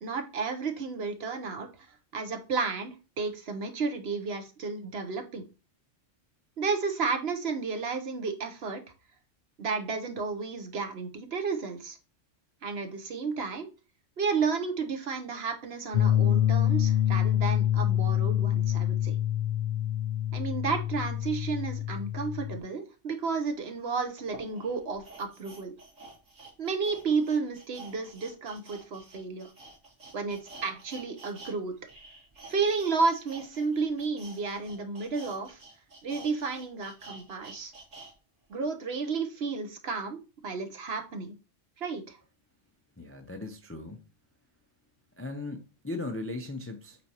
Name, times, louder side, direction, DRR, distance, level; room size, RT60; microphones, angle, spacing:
voice 1, 0.0-5.4 6.6-8.8 9.6-12.0 12.6-13.7 14.2-19.2 20.3-25.7 26.6-29.5 30.1-31.8 32.5-35.6 36.0-37.7 38.5-41.4 41.8-42.2, right 4 dB, 55° right, 1.1 m, -32 dB
sound 1, 15.9-22.6, left 11 dB, 55° left, 0.7 m, -26 dB
sound 2, 23.4-23.5 24.2-31.5 31.8-38.1 38.5-38.6, right 3 dB, 85° right, 3.0 m, -49 dB
voice 2, 43.0-44.1 45.2-47.0, left 2 dB, 20° left, 0.4 m, -38 dB
8.3 x 4.2 x 2.9 m
omnidirectional pair, 1.3 m